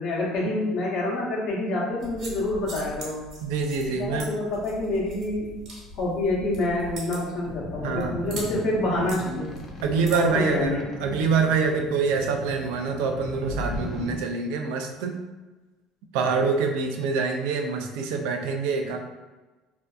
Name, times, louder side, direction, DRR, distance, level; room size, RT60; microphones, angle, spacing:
voice 1, 0.0-3.2 3.9-5.5 6.0-9.5 10.1-10.8, left 1 dB, 65° left, -4 dB, 0.8 m, -27 dB
sound 1, 2.0-10.7, equal, 55° right, 1.1 m, -42 dB
voice 2, 3.4-4.3 7.8-8.1 9.8-10.7 11.0-15.2 16.1-19.0, right 5 dB, 85° right, 4 dB, 0.3 m, -25 dB
sound 2, 7.4-14.2, left 1 dB, 40° left, 0.4 m, -37 dB
2.6 x 2.2 x 2.3 m, 1.2 s
supercardioid pair, 105°, 0 cm